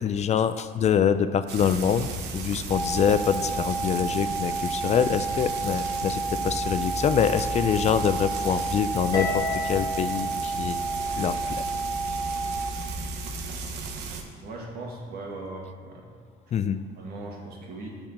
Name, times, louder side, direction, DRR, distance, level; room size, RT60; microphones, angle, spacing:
voice 1, 0.0-10.8 11.2-11.6 16.5-16.8, left 8 dB, 40° left, 12 dB, 0.4 m, -25 dB
Frying (food), 1.5-14.2, right 3 dB, 85° right, 1.0 m, -35 dB
sound 1, 2.7-12.7, right 3 dB, ahead, 0.8 m, -31 dB
Harp, 9.1-11.6, left 3 dB, 25° left, 1.8 m, -33 dB
voice 2, 14.4-16.1 17.0-18.0, right 2 dB, 65° right, -1 dB, 1.9 m, -38 dB
6.6 x 6.0 x 7.3 m, 2.1 s
cardioid pair, 110°, 17 cm